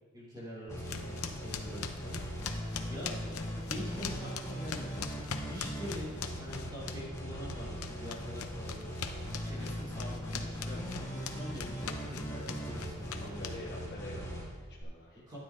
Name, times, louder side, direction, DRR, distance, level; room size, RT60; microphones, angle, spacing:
voice 1, 0.1-2.2 2.9-3.4 3.7-5.1 5.4-8.9 9.4-10.8 11.1-12.4 12.6-13.7 15.3-15.4, equal, 20° right, -7 dB, 3.4 m, -44 dB
sound 1, 0.7-14.8, equal, 15° left, 2.5 m, -40 dB
sound 2, 0.9-7.2 7.5-13.9, left 6 dB, 80° left, 0.7 m, -41 dB
voice 2, 13.2-15.2, left 1 dB, 50° left, -4 dB, 1.3 m, -47 dB
13.0 x 10.0 x 2.7 m, 1.5 s
head